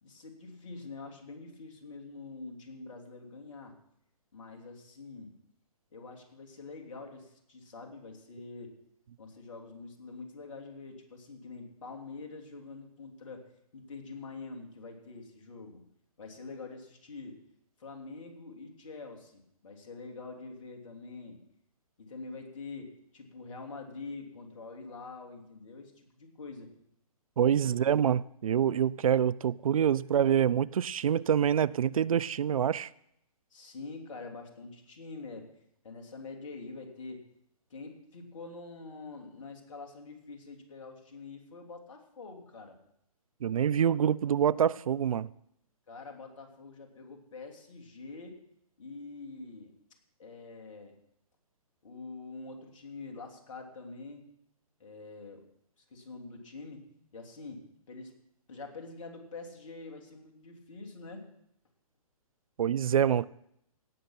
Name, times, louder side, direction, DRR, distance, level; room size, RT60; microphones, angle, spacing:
voice 1, 0.0-3.8 4.3-5.3 5.9-8.7 9.2-13.5 13.7-15.8 16.2-17.4 17.8-21.4 22.0-26.7 27.5-28.1 33.5-35.5 35.8-37.2 37.7-42.8 45.9-48.4 48.8-49.7 50.2-51.0 51.8-54.3 54.8-55.4 55.8-58.1 58.5-61.3, left 3 dB, 60° left, 3.0 m, -45 dB
voice 2, 27.4-32.9 43.4-45.3 62.6-63.3, right 9 dB, 65° right, 0.4 m, -26 dB
17.5 x 6.6 x 5.9 m
figure-of-eight pair, 135°, 19 cm